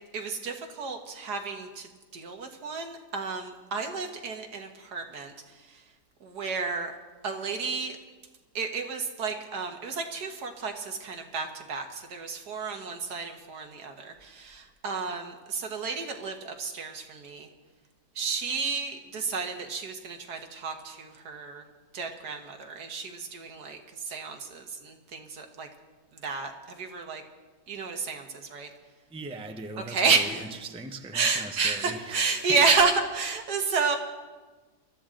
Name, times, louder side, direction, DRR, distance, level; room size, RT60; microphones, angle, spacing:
voice 1, 0.1-5.3 5.7-5.8 6.2-6.9 7.2-8.0 8.6-17.5 18.2-21.6 21.9-25.7 26.1-27.2 27.7-28.7 29.9-30.5 31.1-34.0, right 4 dB, 75° right, 4 dB, 1.9 m, -31 dB
voice 2, 29.1-32.5, right 2 dB, 5° right, 5 dB, 0.6 m, -40 dB
22.5 x 13.5 x 3.8 m, 1.3 s
omnidirectional pair, 1.8 m